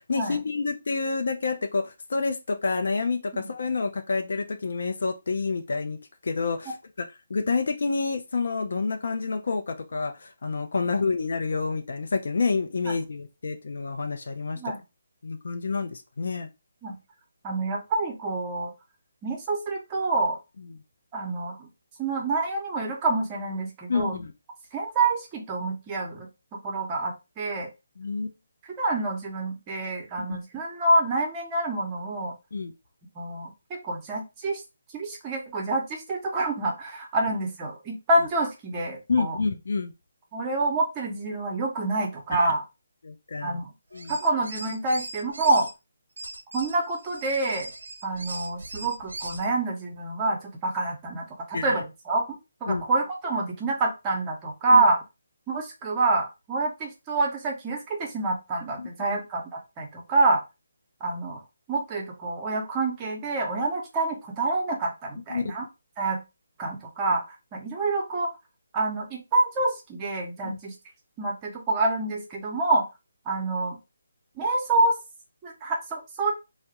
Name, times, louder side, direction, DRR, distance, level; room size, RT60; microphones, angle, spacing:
voice 1, 0.0-6.0 6.2-6.8 7.3-14.6 15.2-16.5 23.9-24.3 28.0-28.3 30.2-30.4 32.5-32.7 39.1-39.9 42.3-42.4 43.0-43.6 43.9-44.1 51.5-51.8 52.7-52.8 54.7-54.8 58.8-59.2 65.3-65.5 70.4-70.6, left 4 dB, 65° left, 6 dB, 0.4 m, -28 dB
voice 2, 17.4-18.7 19.2-20.4 21.1-21.7 22.0-24.2 24.7-26.3 26.6-27.7 28.6-32.3 33.2-34.6 34.9-39.4 40.3-42.6 43.4-43.7 44.1-45.7 46.5-47.7 48.0-55.0 55.5-60.4 61.0-61.4 61.7-65.7 66.0-66.2 66.6-68.3 68.7-70.7 71.2-72.9 73.3-73.8 74.4-75.0 75.4-76.3, right 2 dB, 20° right, 1 dB, 0.7 m, -27 dB
sound 1, 43.9-45.7 46.2-49.5, right 2 dB, 80° right, 0.4 m, -39 dB
2.2 x 2.0 x 2.8 m, 0.25 s
figure-of-eight pair, 155°, 0 cm